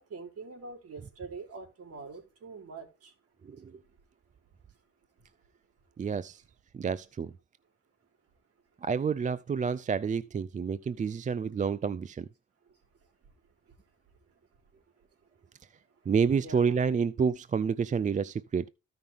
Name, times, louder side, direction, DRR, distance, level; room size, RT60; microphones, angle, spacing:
voice 1, 0.0-3.1 16.3-16.8, right 4 dB, 50° right, 3.5 m, -44 dB
voice 2, 6.0-6.4 6.7-7.3 8.8-12.3 16.1-18.7, right 6 dB, 25° right, 0.4 m, -29 dB
14.0 x 5.8 x 3.5 m
cardioid pair, 90°, 30 cm